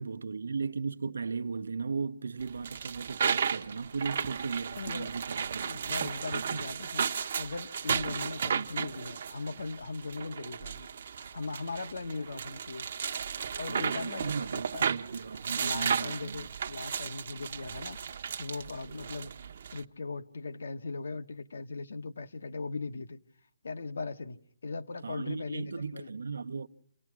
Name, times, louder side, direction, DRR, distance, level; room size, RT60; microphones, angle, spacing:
voice 1, 0.0-5.9 13.7-16.5 25.0-26.7, right 5 dB, 80° right, 0.8 m, -36 dB
sound 1, 2.4-19.8, right 7 dB, 45° right, 0.8 m, -34 dB
voice 2, 4.7-5.2 5.6-10.9 11.2-12.9 13.6-14.9 15.5-19.3 19.7-23.2 23.6-26.1, left 3 dB, 75° left, 1.0 m, -39 dB
28.0 x 18.0 x 6.1 m
hypercardioid pair, 170°, 0 cm